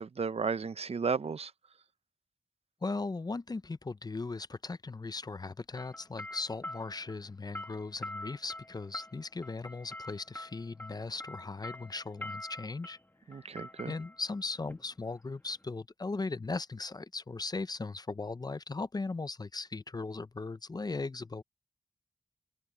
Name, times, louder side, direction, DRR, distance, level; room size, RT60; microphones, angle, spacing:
voice 1, 0.0-1.5 13.3-13.9, right 5 dB, 60° right, 0.6 m, -33 dB
voice 2, 2.8-13.0 13.3-21.4, left 3 dB, 35° left, 0.5 m, -38 dB
sound 1, 5.8-15.6, left 1 dB, 15° left, 1.7 m, -46 dB
open air
wide cardioid pair, 100°, 12 cm